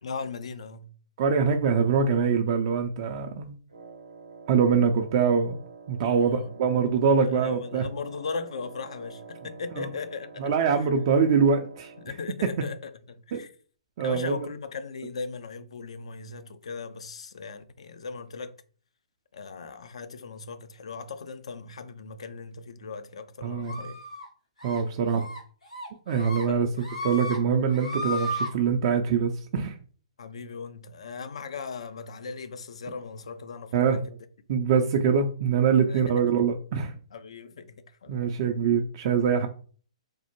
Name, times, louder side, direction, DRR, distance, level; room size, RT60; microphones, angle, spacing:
voice 1, 0.0-0.9 6.0-6.7 7.3-10.5 12.0-13.5 14.0-18.6 19.3-24.0 26.5-26.7 30.2-34.0 35.9-36.3 37.1-38.3, left 4 dB, 65° left, 0.4 m, -38 dB
voice 2, 1.2-3.5 4.5-5.6 5.9-7.9 9.8-9.9 10.4-11.9 13.3-13.4 14.0-14.4 23.4-23.8 24.6-25.3 26.1-26.7 27.0-29.8 33.7-34.0 34.5-36.9 38.1-39.5, right 6 dB, 45° right, 0.4 m, -24 dB
Wind instrument woodwind instrument, 3.7-12.3, right 4 dB, 80° right, 0.6 m, -47 dB
sound 1, 23.7-24.3 24.6-24.8 25.1-25.4 25.7-26.4 26.8-27.4 27.7-28.5, left 1 dB, 90° left, 1.1 m, -34 dB
3.3 x 2.0 x 3.0 m
figure-of-eight pair, 125°, 3 cm